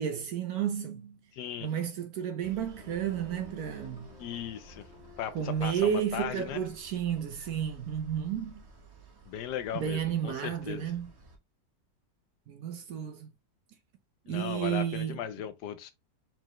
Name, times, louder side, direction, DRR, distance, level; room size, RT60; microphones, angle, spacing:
voice 1, 0.0-1.2 1.6-4.1 5.3-8.6 9.7-11.1 12.5-13.3 14.3-15.2, right 9 dB, 70° right, 0.9 m, -32 dB
voice 2, 1.3-1.7 4.2-4.9 5.2-6.6 9.3-10.9 14.3-15.9, left 9 dB, 75° left, 1.1 m, -37 dB
sound 1, 2.4-11.4, right 1 dB, 45° right, 1.1 m, -53 dB
sound 2, 2.8-6.3, left 5 dB, 35° left, 1.4 m, -54 dB
4.4 x 4.0 x 3.0 m
omnidirectional pair, 2.0 m